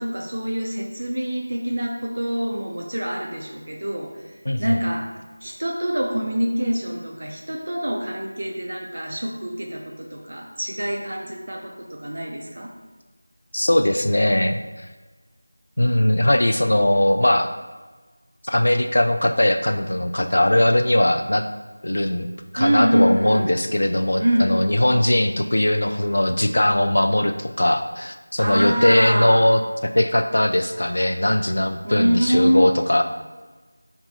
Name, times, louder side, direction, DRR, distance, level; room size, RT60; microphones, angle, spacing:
voice 1, 0.0-4.1 4.6-5.1 5.4-12.7 22.6-23.5 24.2-24.6 28.4-29.5 31.8-32.7, equal, 45° right, 0 dB, 0.5 m, -24 dB
voice 2, 4.5-4.8 13.5-14.9 15.8-17.5 18.4-21.4 21.8-33.0, left 1 dB, 65° left, 6 dB, 0.3 m, -20 dB
3.3 x 2.9 x 4.0 m, 1.3 s
figure-of-eight pair, 180°, 0 cm